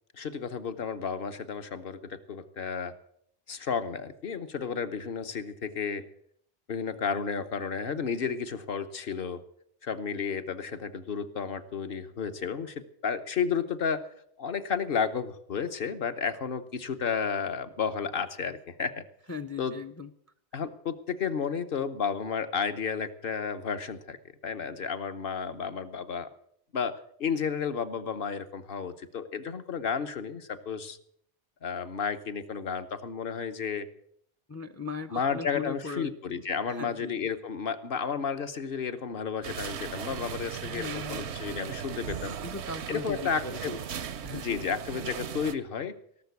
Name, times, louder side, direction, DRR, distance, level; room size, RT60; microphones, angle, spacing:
voice 1, 0.1-2.9 3.5-6.0 6.7-9.4 9.8-14.1 14.4-19.0 19.6-19.7 20.5-24.2 24.4-26.3 26.7-31.0 31.6-33.9 35.1-42.4 42.9-43.7 44.3-45.9, left 6 dB, 60° left, 9 dB, 1.1 m, -32 dB
voice 2, 19.3-20.1 34.5-36.1 36.7-37.2 40.6-41.3 42.4-43.8 44.2-44.7, left 4 dB, 25° left, 13 dB, 0.4 m, -38 dB
sound 1, 39.4-45.5, right 8 dB, 90° right, 1.1 m, -37 dB
17.5 x 6.7 x 8.2 m, 0.68 s
omnidirectional pair, 1.1 m